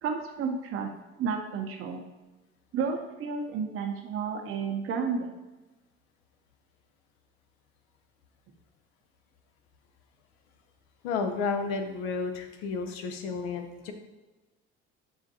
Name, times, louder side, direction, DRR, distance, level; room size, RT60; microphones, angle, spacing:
voice 1, 0.0-0.9 1.2-2.0 2.7-5.3, right 5 dB, 50° right, 3 dB, 0.6 m, -31 dB
voice 2, 11.0-13.9, left 4 dB, 80° left, 6 dB, 0.6 m, -32 dB
6.2 x 2.5 x 2.7 m, 1.1 s
supercardioid pair, 75°, 30 cm